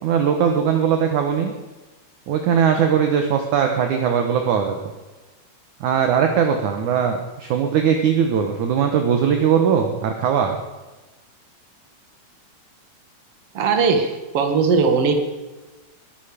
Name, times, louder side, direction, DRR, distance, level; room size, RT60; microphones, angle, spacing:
voice 1, 0.0-1.5 2.3-4.9 5.8-10.6, right 7 dB, 65° right, 4 dB, 2.2 m, -20 dB
voice 2, 13.5-15.1, right 5 dB, 45° right, 4 dB, 2.3 m, -19 dB
21.5 x 11.5 x 5.1 m, 1.2 s
omnidirectional pair, 4.5 m